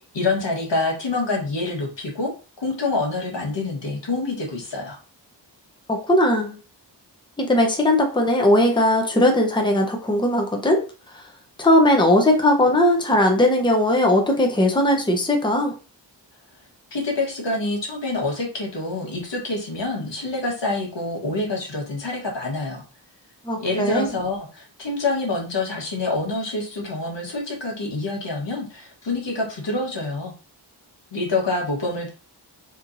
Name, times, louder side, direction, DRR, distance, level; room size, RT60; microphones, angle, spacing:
voice 1, 0.1-2.3 2.6-5.0 16.9-22.8 23.6-30.3 31.1-32.1, left 2 dB, 80° left, 0 dB, 1.3 m, -26 dB
voice 2, 5.9-6.6 7.4-10.8 11.1-11.2 11.6-15.7 23.4-24.1, left 1 dB, 10° left, 2 dB, 0.8 m, -19 dB
4.3 x 3.0 x 2.6 m, 0.35 s
wide cardioid pair, 90°, 43 cm